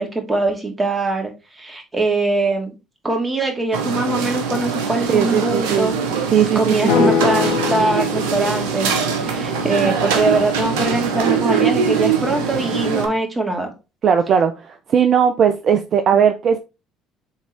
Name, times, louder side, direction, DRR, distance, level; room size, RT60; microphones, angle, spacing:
voice 1, 0.0-2.7 3.0-6.0 6.5-8.9 9.2-13.7, right 2 dB, 20° right, 2.4 m, -22 dB
sound 1, 3.7-13.1, right 6 dB, 75° right, 1.0 m, -22 dB
voice 2, 5.1-6.0 6.3-7.2 14.0-16.6, right 7 dB, 50° right, 0.6 m, -18 dB
sound 2, 6.9-11.0, left 7 dB, 75° left, 1.4 m, -25 dB
7.3 x 3.7 x 3.5 m
hypercardioid pair, 60°, 0 cm